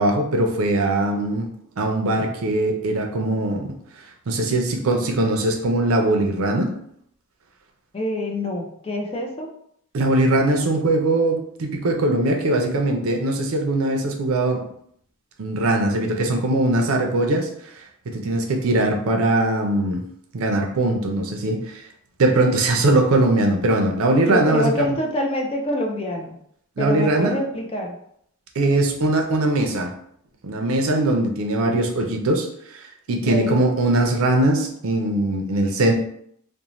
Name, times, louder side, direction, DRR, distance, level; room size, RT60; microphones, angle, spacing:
voice 1, 0.0-1.5 1.8-3.8 4.3-6.7 9.9-14.6 15.4-17.5 18.1-20.0 20.3-21.8 22.2-25.0 26.8-27.4 28.6-29.9 30.4-32.5 32.7-35.9, right 2 dB, 75° right, 2 dB, 0.5 m, -21 dB
voice 2, 7.9-9.5 24.2-26.4 26.8-27.9 33.1-33.6, left 1 dB, 25° left, 2 dB, 0.4 m, -26 dB
2.6 x 2.1 x 2.9 m, 0.70 s
head